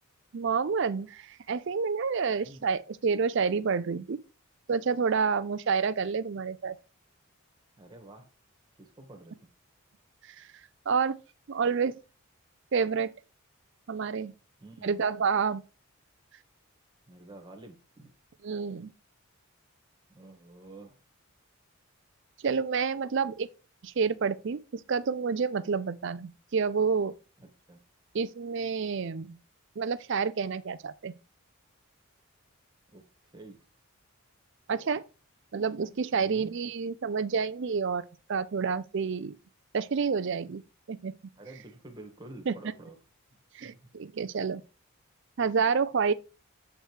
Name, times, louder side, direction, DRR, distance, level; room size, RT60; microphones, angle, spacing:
voice 1, 0.3-4.2 4.7-6.8 10.2-10.5 10.9-11.2 11.5-12.0 12.7-13.1 13.9-14.3 14.8-15.6 18.4-18.9 22.4-23.5 23.8-27.1 28.1-29.4 29.8-31.1 34.7-35.0 35.5-39.3 39.7-40.6 40.9-41.2 42.5-42.6 43.5-44.6 45.4-46.1, right 5 dB, 55° right, 0.4 m, -29 dB
voice 2, 7.8-8.3 8.8-9.4 14.6-15.0 17.1-18.1 20.1-21.0 27.4-27.8 32.9-33.6 36.1-36.5 41.3-42.9 43.6-43.8, right 2 dB, 20° right, 1.4 m, -49 dB
7.9 x 3.3 x 4.5 m
head